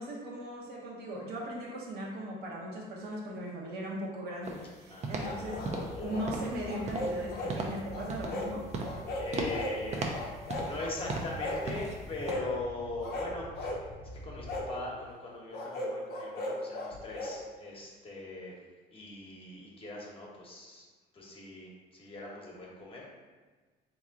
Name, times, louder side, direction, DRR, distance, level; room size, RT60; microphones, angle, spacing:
voice 1, 0.0-5.6 6.0-8.6, equal, 75° right, -3 dB, 1.0 m, -38 dB
sound 1, 4.4-4.7 5.0-5.3 5.6-6.0 6.3-6.6 6.9-7.2 7.5-7.8 8.1-8.5 8.7-9.0 9.3-9.6 9.9-10.8 11.1-11.4 11.7-12.0 12.3-12.4, right 3 dB, 40° right, 0.6 m, -36 dB
voice 2, 4.9-6.1 9.2-13.9 14.1-18.7 18.9-20.8 21.1-23.0, left 2 dB, 35° left, -3 dB, 1.1 m, -41 dB
sound 2, 5.1-14.7, equal, 10° left, 0.6 m, -47 dB
sound 3, 5.2-6.3 6.6-7.6 7.9-8.5 8.8-9.8 10.1-10.9 11.4-11.7 12.2-12.5 13.0-13.8 14.5-14.7 15.5-17.4, left 1 dB, 70° left, 0.7 m, -37 dB
3.6 x 3.0 x 3.7 m, 1.3 s
cardioid pair, 110°, 17 cm